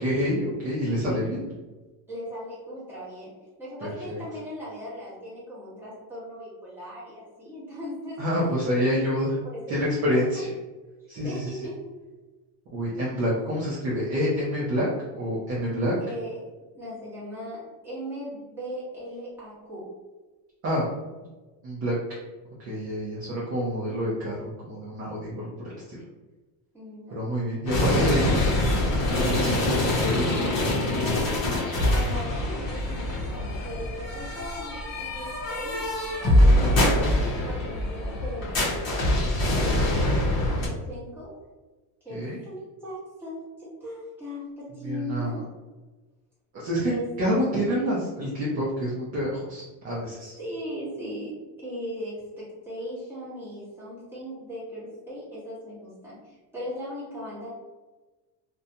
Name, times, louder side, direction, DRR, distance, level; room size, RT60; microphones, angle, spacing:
voice 1, 0.0-1.4 3.8-4.2 8.2-9.4 9.7-10.5 11.1-11.6 12.7-14.9 15.1-16.0 20.6-20.9 21.6-21.9 22.6-26.0 27.1-28.6 29.1-31.5 42.1-42.4 44.8-45.4 46.5-50.4, equal, 30° right, -7 dB, 0.5 m, -28 dB
voice 2, 2.1-3.3 3.6-8.9 9.5-10.4 11.2-11.9 16.0-16.4 16.7-19.9 26.7-27.2 31.8-39.0 39.5-41.3 42.0-45.4 46.8-47.4 50.4-57.5, equal, 5° right, -10 dB, 0.9 m, -38 dB
sound 1, 27.7-40.7, left 1 dB, 35° left, 0.7 m, -24 dB
2.6 x 2.2 x 2.6 m, 1.2 s
cardioid pair, 165°, 47 cm